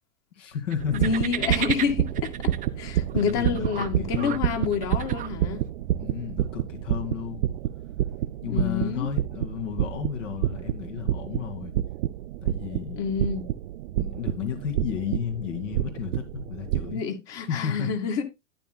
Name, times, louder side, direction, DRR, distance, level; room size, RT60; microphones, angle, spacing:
voice 1, 0.3-1.1 3.1-4.5 6.0-7.6 8.4-11.7 12.4-13.0 14.0-17.0 17.3-17.9, left 8 dB, 70° left, 2.4 m, -33 dB
sound 1, 0.7-5.7, right 11 dB, 20° right, 0.7 m, -35 dB
sound 2, 0.8-17.0, right 13 dB, 60° right, 0.6 m, -29 dB
voice 2, 0.9-5.6 8.5-9.1 13.0-13.5 16.9-18.2, left 6 dB, 40° left, 2.0 m, -28 dB
12.0 x 9.7 x 2.2 m
hypercardioid pair, 115°, 39 cm